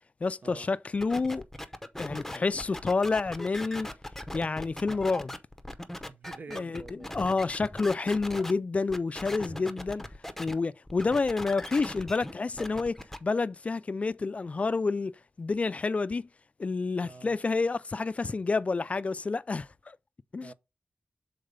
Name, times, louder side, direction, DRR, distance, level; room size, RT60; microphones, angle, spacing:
voice 1, 0.2-1.4 2.0-3.9 4.3-5.3 6.5-6.8 7.1-10.0 10.4-15.1 15.4-16.2 16.6-20.0 20.3-20.5, left 4 dB, 40° left, 0.3 m, -29 dB
sound 1, 1.0-8.5 8.9-10.5 10.9-13.2, left 1 dB, 5° left, 0.7 m, -39 dB
voice 2, 6.1-7.2 17.0-17.4 20.4-20.5, right 4 dB, 60° right, 0.6 m, -46 dB
6.6 x 4.0 x 5.1 m
wide cardioid pair, 120°, 3 cm